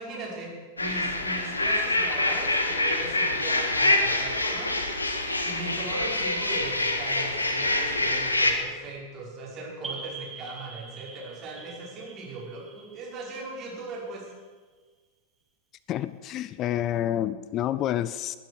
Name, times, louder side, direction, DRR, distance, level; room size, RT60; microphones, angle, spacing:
voice 1, 0.0-4.7 5.4-14.3, right 3 dB, 30° right, 5.6 m, -39 dB
sound 1, 0.8-8.5, left 2 dB, 80° left, 1.6 m, -26 dB
sound 2, 9.8-14.3, right 4 dB, 15° right, 2.9 m, -43 dB
voice 2, 15.9-18.4, left 12 dB, 35° left, 0.4 m, -28 dB
20.0 x 10.5 x 6.4 m
figure-of-eight pair, 90°, 0 cm